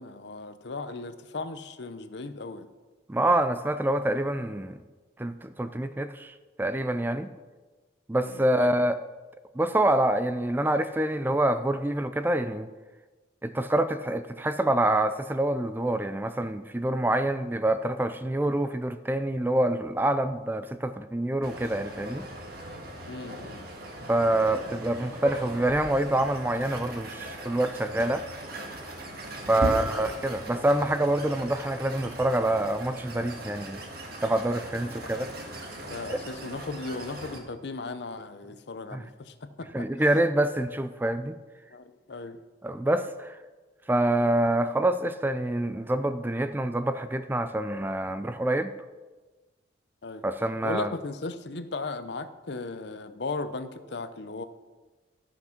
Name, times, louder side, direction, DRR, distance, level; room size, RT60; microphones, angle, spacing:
voice 1, 0.0-2.7 8.2-8.8 23.1-23.6 29.6-30.1 35.9-39.7 40.0-40.2 41.7-42.4 50.0-50.3 50.6-54.4, left 3 dB, 60° left, 11 dB, 0.6 m, -37 dB
voice 2, 3.1-4.8 5.2-7.3 8.1-8.9 9.6-12.7 13.4-22.3 24.1-28.2 29.5-33.8 34.2-35.3 36.1-36.2 38.9-39.0 39.7-41.4 42.6-43.4 43.9-48.7 50.2-50.9, right 1 dB, 10° right, 11 dB, 0.3 m, -26 dB
sound 1, 21.4-37.4, right 1 dB, 55° right, 1.6 m, -39 dB
13.0 x 5.9 x 5.8 m, 1.3 s
head